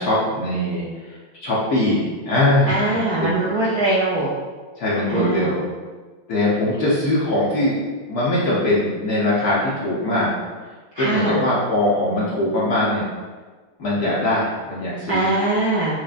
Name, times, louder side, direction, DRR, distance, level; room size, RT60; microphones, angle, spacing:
voice 1, 0.0-3.4 4.8-5.7 6.3-7.8 8.1-10.3 11.0-13.1 13.8-15.3, left 1 dB, 60° left, -7 dB, 1.0 m, -21 dB
voice 2, 2.7-4.3 5.1-5.5 10.9-11.4 15.1-16.0, right 2 dB, 75° right, -7 dB, 0.9 m, -22 dB
6.2 x 2.1 x 2.4 m, 1.4 s
omnidirectional pair, 2.3 m